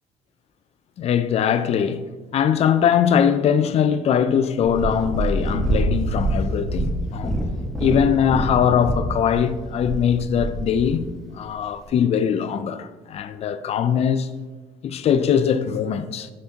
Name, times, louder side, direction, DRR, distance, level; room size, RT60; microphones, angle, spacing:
voice 1, 1.0-2.0 2.3-7.4 7.8-11.0 11.3-14.3 14.8-16.3, left 8 dB, 45° left, 0.4 m, -21 dB
Purr, 4.6-11.0 11.7-11.8, right 1 dB, ahead, 1.0 m, -25 dB
6.4 x 5.6 x 2.8 m
cardioid pair, 110°, 14 cm